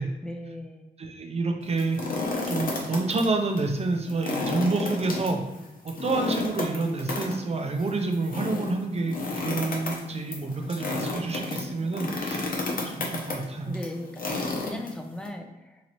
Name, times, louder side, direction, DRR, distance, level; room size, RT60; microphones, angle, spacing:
voice 1, 0.2-0.9 13.6-15.8, left 1 dB, 5° left, 4 dB, 0.5 m, -39 dB
voice 2, 1.0-2.1 2.5-5.4 5.8-12.5 12.8-13.7, right 3 dB, 40° right, 4 dB, 0.6 m, -28 dB
sound 1, 1.6-3.3 3.6-3.7 4.1-15.3, left 3 dB, 60° left, 0.8 m, -32 dB
3.0 x 2.8 x 4.1 m, 1.0 s
cardioid pair, 80°, 16 cm